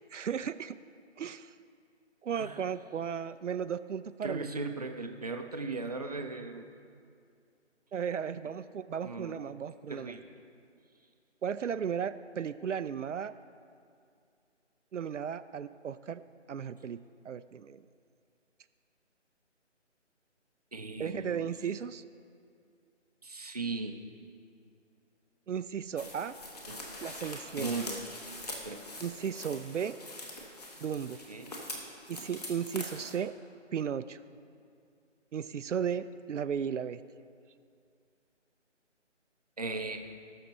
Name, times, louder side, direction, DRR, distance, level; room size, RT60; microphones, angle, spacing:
voice 1, 0.1-0.8 1.2-1.5 2.2-4.5 7.9-10.2 11.4-13.3 14.9-16.2 16.5-17.0 17.2-17.8 21.0-22.0 25.5-26.3 27.0-27.7 29.0-30.0 30.8-31.2 32.1-33.3 33.7-34.2 35.3-37.0, right 7 dB, 75° right, 12 dB, 0.5 m, -35 dB
voice 2, 4.2-6.7 9.0-9.4 9.9-10.3 20.7-21.6 23.2-23.9 26.7-26.8 27.6-28.0 28.6-28.8 31.3-31.5 39.6-40.0, right 3 dB, 35° right, 4 dB, 0.6 m, -37 dB
sound 1, 26.0-33.2, left 1 dB, 35° left, 1.4 m, -43 dB
17.5 x 6.6 x 4.1 m, 2.3 s
figure-of-eight pair, 170°, 37 cm